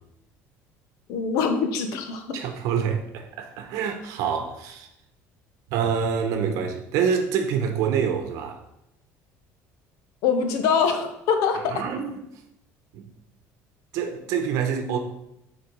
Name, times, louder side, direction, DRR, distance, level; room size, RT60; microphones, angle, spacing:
voice 1, 1.1-2.4 10.2-11.8, left 6 dB, 70° left, 1.0 m, -24 dB
voice 2, 2.3-4.9 5.7-8.6 11.7-12.2 12.9-13.1 13.9-15.0, right 7 dB, 70° right, 1.0 m, -26 dB
6.8 x 4.4 x 4.6 m
cardioid pair, 140°, 6 cm